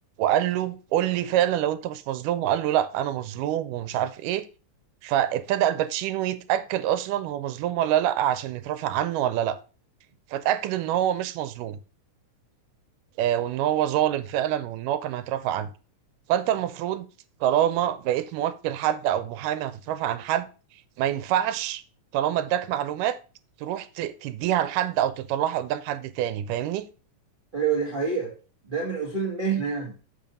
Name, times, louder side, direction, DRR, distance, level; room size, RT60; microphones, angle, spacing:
voice 1, 0.2-4.5 5.0-9.6 10.3-11.8 13.2-15.7 16.3-17.1 17.4-20.5 21.0-21.8 22.1-23.2 23.6-26.9, right 11 dB, 85° right, 2.2 m, -26 dB
voice 2, 27.5-28.3 28.6-29.9, right 5 dB, 30° right, 0.9 m, -27 dB
7.3 x 3.9 x 5.4 m
omnidirectional pair, 3.7 m